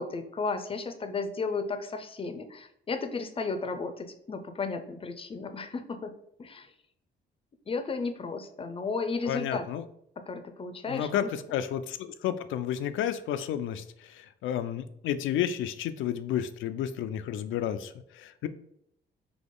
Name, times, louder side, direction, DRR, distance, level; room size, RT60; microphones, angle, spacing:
voice 1, 0.0-6.1 6.4-6.7 7.7-9.7 10.3-11.3, left 4 dB, 30° left, 8 dB, 0.5 m, -34 dB
voice 2, 9.3-9.8 10.9-18.5, left 10 dB, 80° left, 12 dB, 0.4 m, -31 dB
4.0 x 2.9 x 3.7 m, 0.73 s
cardioid pair, 90°, 20 cm